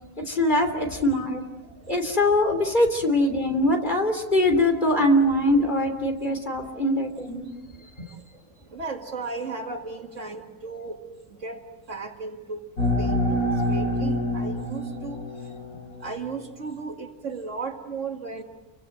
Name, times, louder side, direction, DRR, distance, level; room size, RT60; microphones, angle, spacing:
voice 1, 0.3-1.4 1.9-7.5, left 1 dB, 30° left, 5 dB, 3.2 m, -22 dB
voice 2, 7.5-11.0 11.3-11.6 11.9-12.7 13.0-15.2 16.0-18.4, right 4 dB, 55° right, 4 dB, 2.3 m, -35 dB
sound 1, 12.8-16.2, left 1 dB, 80° left, 5.4 m, -26 dB
30.0 x 24.0 x 7.8 m, 1.1 s
omnidirectional pair, 1.6 m